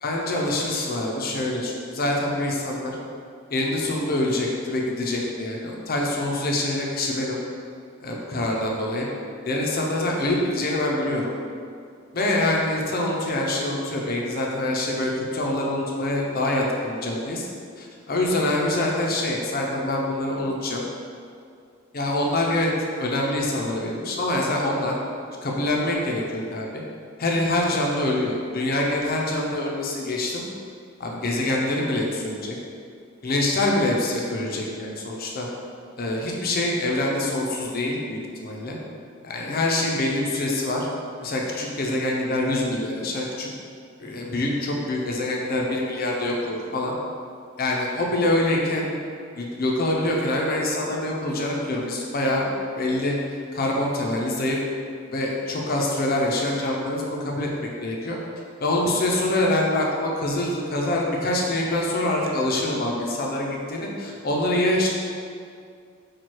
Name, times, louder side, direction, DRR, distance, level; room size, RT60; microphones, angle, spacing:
voice 1, 0.0-3.0 3.5-7.4 8.0-9.1 9.4-11.3 12.1-17.5 17.8-20.8 21.9-22.7 23.0-24.9 25.4-26.8 27.2-30.4 31.0-32.6 33.2-35.5 36.0-38.8 39.2-40.9 41.2-43.5 44.0-46.9 47.6-48.9 49.4-52.5 52.8-53.1 53.5-54.6 55.1-57.5 57.8-58.2 58.6-64.9, left 1 dB, 45° left, -1 dB, 0.6 m, -25 dB
4.5 x 2.4 x 4.4 m, 2.3 s
head